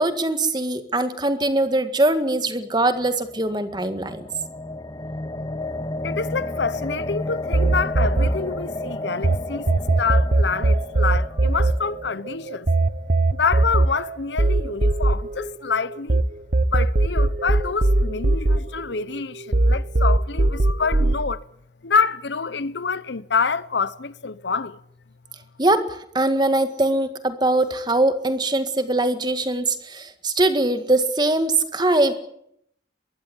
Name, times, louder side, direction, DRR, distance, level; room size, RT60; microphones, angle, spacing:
voice 1, 0.0-4.3 25.6-32.1, right 2 dB, 25° right, 1.8 m, -22 dB
sound 1, 2.8-13.0, left 2 dB, 25° left, 0.9 m, -33 dB
voice 2, 6.0-12.7 13.3-16.3 16.7-21.4 21.8-24.8, left 5 dB, 80° left, 1.0 m, -27 dB
sound 2, 7.5-9.4 9.7-16.2 16.5-19.2 19.5-21.2, right 2 dB, 50° right, 1.0 m, -19 dB
22.5 x 15.5 x 9.9 m
head